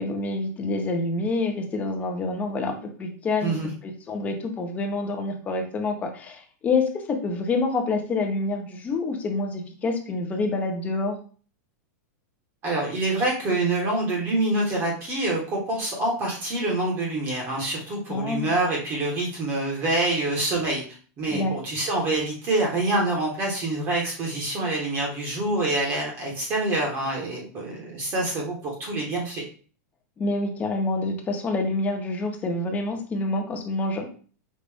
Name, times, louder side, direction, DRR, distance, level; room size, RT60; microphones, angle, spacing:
voice 1, 0.0-11.2 18.1-18.5 21.3-21.5 30.2-34.1, left 3 dB, 15° left, 4 dB, 0.7 m, -27 dB
voice 2, 12.6-20.8 21.2-29.4, right 2 dB, 25° right, -1 dB, 1.1 m, -26 dB
5.3 x 2.4 x 3.4 m, 0.41 s
supercardioid pair, 160°, 9 cm